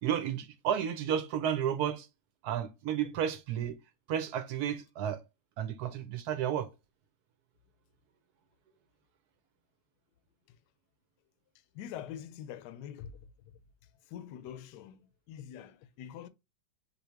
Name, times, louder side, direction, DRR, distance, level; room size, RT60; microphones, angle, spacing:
voice 1, 0.0-2.1 2.4-3.8 4.1-5.2 5.6-6.7, right 9 dB, 70° right, 1.0 m, -32 dB
voice 2, 11.7-13.5 14.1-16.3, left 9 dB, 75° left, 1.1 m, -45 dB
4.3 x 2.8 x 4.4 m
omnidirectional pair, 2.0 m